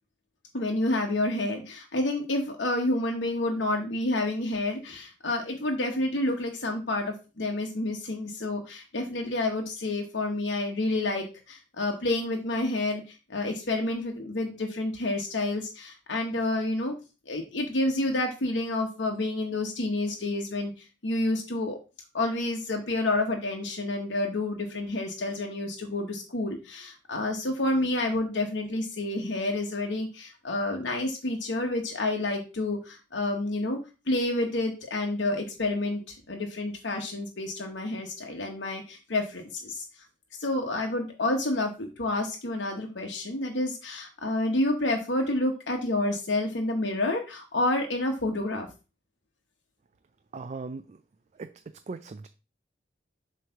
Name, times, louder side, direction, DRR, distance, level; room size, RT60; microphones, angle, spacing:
voice 1, 0.5-16.9 17.3-21.8 22.1-33.8 34.1-39.8 40.4-48.7, left 2 dB, 75° left, 2 dB, 1.1 m, -29 dB
voice 2, 50.3-51.0 51.4-51.5 51.9-52.3, right 4 dB, 40° right, 10 dB, 0.4 m, -38 dB
7.8 x 3.2 x 5.7 m, 0.31 s
head